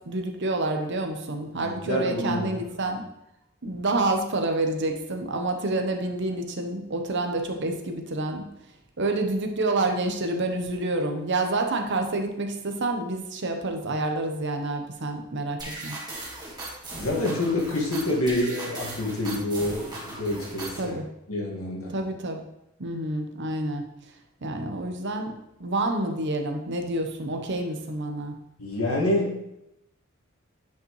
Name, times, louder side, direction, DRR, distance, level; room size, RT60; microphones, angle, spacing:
voice 1, 0.1-3.0 3.6-8.5 9.0-16.0 20.8-21.0 21.9-22.4 22.8-23.9 24.4-25.3 25.6-28.3, right 2 dB, 55° right, 4 dB, 0.9 m, -28 dB
voice 2, 1.5-3.0 17.0-21.0 21.3-22.0 28.6-29.4, left 1 dB, 85° left, -2 dB, 1.9 m, -27 dB
sound 1, 15.6-20.9, right 2 dB, 20° right, 1.7 m, -38 dB
9.1 x 5.4 x 3.2 m, 0.84 s
head